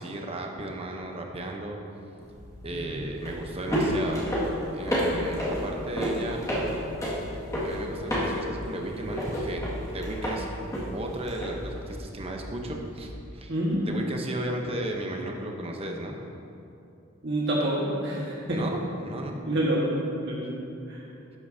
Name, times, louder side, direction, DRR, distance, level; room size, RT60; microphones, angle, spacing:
voice 1, 0.0-1.8 2.6-4.3 4.7-6.4 7.6-10.5 10.9-13.5 13.8-16.2 18.5-19.4, right 1 dB, 30° right, 1 dB, 0.8 m, -35 dB
sound 1, 2.2-13.1, equal, 15° left, 2.0 m, -31 dB
voice 2, 13.5-13.8 17.2-18.6 19.4-19.8 20.2-20.5 20.9-21.0, right 1 dB, 60° right, -5 dB, 1.6 m, -27 dB
12.5 x 8.3 x 2.8 m, 2.7 s
head